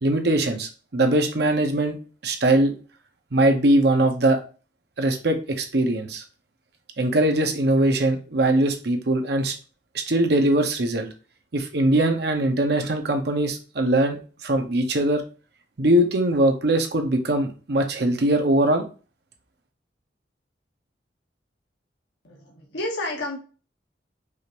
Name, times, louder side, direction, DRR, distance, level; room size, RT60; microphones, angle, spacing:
voice 1, 0.0-2.0 2.2-2.7 3.3-4.4 5.0-6.2 7.0-9.5 9.9-11.1 11.5-15.2 15.8-18.8, right 1 dB, 65° right, 4 dB, 0.8 m, -21 dB
voice 2, 22.2-23.4, left 1 dB, 80° left, -1 dB, 1.0 m, -30 dB
4.9 x 2.5 x 2.9 m, 0.35 s
head